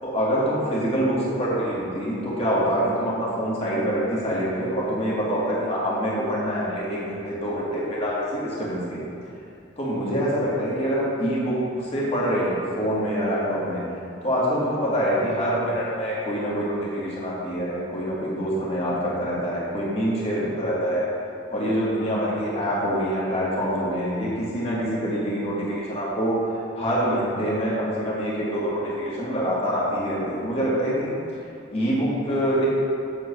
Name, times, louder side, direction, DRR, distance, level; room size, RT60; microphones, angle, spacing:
voice 1, 0.0-9.0 9.8-13.8 14.2-21.1 21.5-26.4 26.8-31.1 31.7-32.7, equal, 30° left, -7 dB, 1.9 m, -25 dB
7.8 x 3.8 x 6.5 m, 2.6 s
head